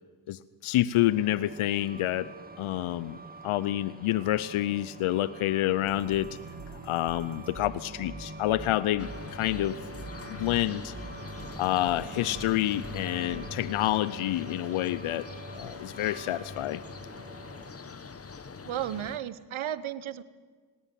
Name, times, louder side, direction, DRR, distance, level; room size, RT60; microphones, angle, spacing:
voice 1, 0.3-2.3 2.6-3.2 3.4-6.3 6.8-9.8 10.4-10.9 11.6-15.3 15.5-16.8, left 14 dB, 90° left, 17 dB, 0.7 m, -28 dB
Truck, 1.0-17.7, right 3 dB, 20° right, 2.2 m, -48 dB
sound 1, 5.8-13.6, right 3 dB, 35° right, 3.4 m, -44 dB
sound 2, 9.0-19.2, left 4 dB, 30° left, 1.1 m, -43 dB
voice 2, 18.6-20.2, right 11 dB, 75° right, 16 dB, 1.1 m, -34 dB
19.0 x 17.5 x 9.2 m, 1.5 s
cardioid pair, 65°, 48 cm